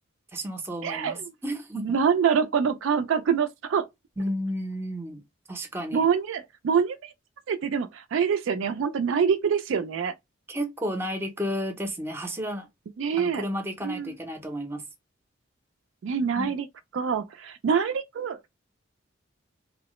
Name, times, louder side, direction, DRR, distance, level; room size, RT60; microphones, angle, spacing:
voice 1, 0.3-2.0 4.2-5.2 5.5-6.1 10.5-12.7 13.2-14.8 16.3-16.6, equal, 10° right, 0.5 m, -32 dB
voice 2, 0.8-1.3 1.8-3.9 5.9-7.1 7.5-10.1 13.0-13.4 13.8-14.2 16.0-16.7 16.9-18.4, right 6 dB, 70° right, 0.3 m, -25 dB
3.0 x 2.0 x 2.9 m
head